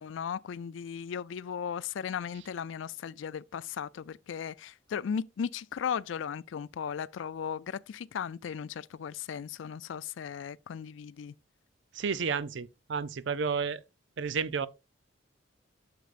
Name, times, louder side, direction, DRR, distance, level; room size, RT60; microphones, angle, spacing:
voice 1, 0.0-11.3, left 7 dB, 80° left, 0.4 m, -36 dB
voice 2, 11.9-13.8 14.2-14.7, right 5 dB, 70° right, 0.5 m, -31 dB
9.3 x 6.8 x 2.5 m
head